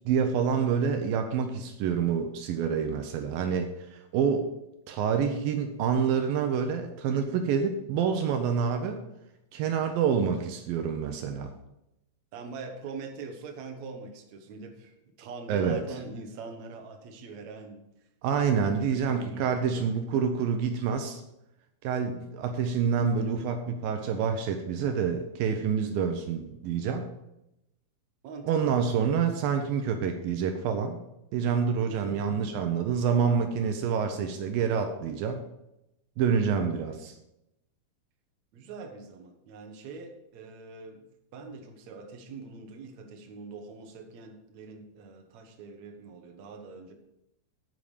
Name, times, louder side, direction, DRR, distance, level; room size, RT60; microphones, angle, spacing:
voice 1, 0.1-4.5 4.9-9.0 9.5-11.5 15.5-15.8 18.2-21.2 21.8-27.0 28.4-31.0 31.3-35.4 36.2-37.1, right 6 dB, 80° right, 6 dB, 2.5 m, -27 dB
voice 2, 12.3-17.8 18.7-20.0 28.2-28.8 31.9-32.2 38.5-46.9, right 4 dB, 60° right, 3 dB, 2.2 m, -43 dB
9.3 x 9.3 x 5.0 m, 0.87 s
omnidirectional pair, 4.3 m